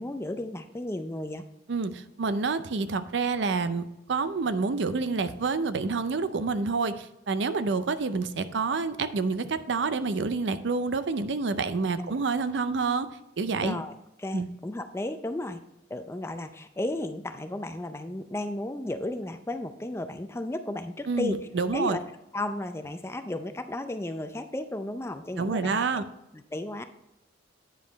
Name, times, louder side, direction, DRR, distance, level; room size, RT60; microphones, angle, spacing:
voice 1, 0.0-1.4 12.0-12.1 13.6-13.9 14.2-15.6 15.9-22.0 22.3-25.8 26.3-26.8, left 1 dB, 15° left, 8 dB, 0.4 m, -34 dB
voice 2, 1.7-13.1 13.4-13.8 14.3-14.5 21.1-22.0 25.4-26.0, right 4 dB, 70° right, 11 dB, 0.5 m, -28 dB
9.0 x 5.2 x 4.0 m, 0.89 s
head